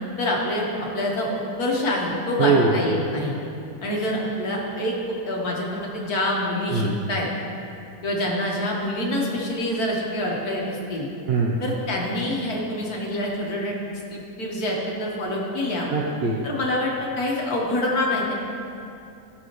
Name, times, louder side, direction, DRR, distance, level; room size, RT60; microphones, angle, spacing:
voice 1, 0.2-1.3 1.6-3.4 3.8-4.9 5.3-7.3 8.0-11.1 11.6-13.7 14.1-15.9 16.4-18.3, left 1 dB, 75° left, -2 dB, 1.9 m, -26 dB
voice 2, 2.4-2.8 6.7-7.0 11.3-11.6 15.9-16.4, right 4 dB, 50° right, -2 dB, 0.8 m, -21 dB
15.0 x 7.0 x 3.1 m, 2.8 s
omnidirectional pair, 1.6 m